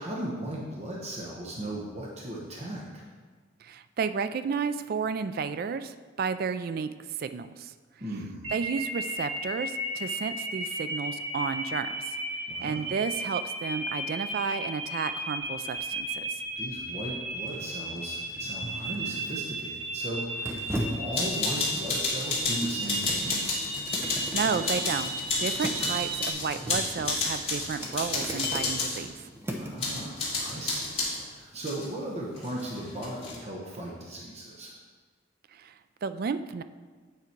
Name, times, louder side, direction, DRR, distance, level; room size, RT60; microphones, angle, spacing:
voice 1, 0.0-3.0 8.0-8.5 12.5-12.9 16.6-23.4 29.6-34.7, right 1 dB, 35° right, -3 dB, 1.0 m, -37 dB
voice 2, 3.6-6.9 7.2-7.7 8.5-12.0 12.6-16.4 24.0-25.1 25.4-29.3 35.5-35.7 36.0-36.6, right 5 dB, 50° right, 12 dB, 0.3 m, -32 dB
sound 1, 8.4-26.3, right 2 dB, 70° right, 1.8 m, -34 dB
sound 2, 15.2-29.9 30.3-30.5, equal, 15° right, 0.8 m, -40 dB
sound 3, 21.1-29.0 29.8-31.2 31.6-31.9 32.4-33.4, left 3 dB, 30° left, 2.4 m, -31 dB
8.4 x 5.0 x 4.5 m, 1.5 s
head